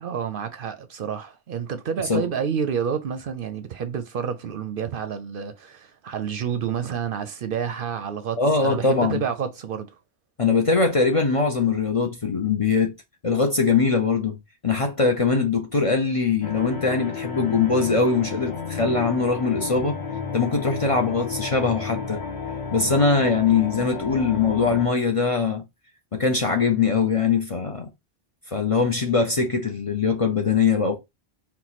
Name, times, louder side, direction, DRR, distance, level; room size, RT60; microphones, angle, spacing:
voice 1, 0.0-10.0, right 7 dB, 60° right, 0.7 m, -29 dB
voice 2, 8.4-9.2 10.4-12.9 13.2-14.4 14.6-20.0 20.3-22.2 22.7-25.6 26.1-27.9 28.5-31.0, left 4 dB, 40° left, 0.6 m, -22 dB
sound 1, 16.4-24.9, left 5 dB, 75° left, 1.6 m, -32 dB
4.6 x 2.1 x 4.0 m
omnidirectional pair, 1.1 m